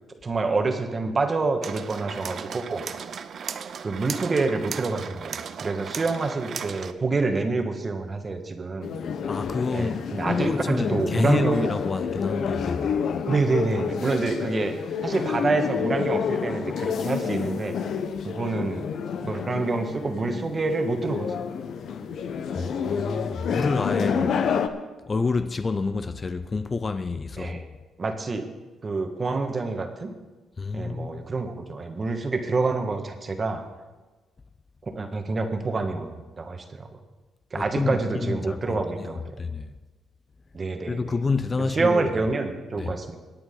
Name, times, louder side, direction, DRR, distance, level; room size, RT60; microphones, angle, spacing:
voice 1, 0.1-2.9 3.8-9.0 9.7-11.7 13.3-14.7 15.0-17.7 18.2-18.9 19.2-21.3 22.5-22.8 23.9-24.3 27.4-27.6 28.0-28.5 28.8-30.1 30.7-33.6 34.8-36.9 37.5-39.4 40.5-41.2 41.6-43.2, right 3 dB, 35° right, 1.7 m, -27 dB
sound 1, 1.6-6.9, right 7 dB, 55° right, 0.6 m, -36 dB
sound 2, 8.8-24.7, left 6 dB, 65° left, 0.9 m, -29 dB
voice 2, 9.3-13.0 22.5-24.4 25.1-27.6 30.6-31.3 37.5-39.1 39.4-39.7 40.9-42.1 42.7-42.9, left 4 dB, 30° left, 0.5 m, -28 dB
22.5 x 9.0 x 3.9 m
cardioid pair, 90°, 0 cm